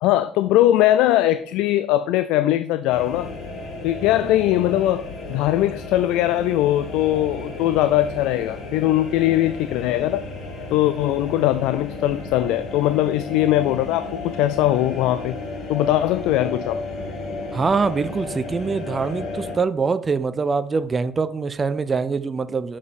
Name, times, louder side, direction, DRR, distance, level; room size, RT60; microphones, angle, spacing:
voice 1, 0.0-3.3 3.8-10.2 10.7-15.3 15.7-16.8, left 14 dB, 80° left, 0.3 m, -20 dB
sound 1, 2.9-19.5, left 2 dB, 50° left, 2.0 m, -33 dB
voice 2, 17.5-22.8, right 4 dB, 30° right, 0.5 m, -24 dB
7.1 x 4.9 x 4.2 m
supercardioid pair, 95°, 0 cm